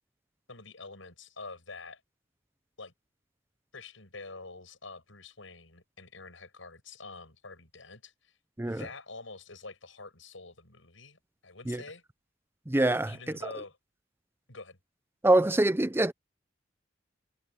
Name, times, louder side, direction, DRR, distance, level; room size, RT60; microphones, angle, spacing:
voice 1, 0.5-2.0 2.8-2.9 3.7-8.3 8.6-12.0 13.0-13.8 14.5-14.8, left 3 dB, 75° left, 7.6 m, -46 dB
voice 2, 12.7-13.2 15.2-16.1, right 1 dB, 10° right, 0.6 m, -24 dB
head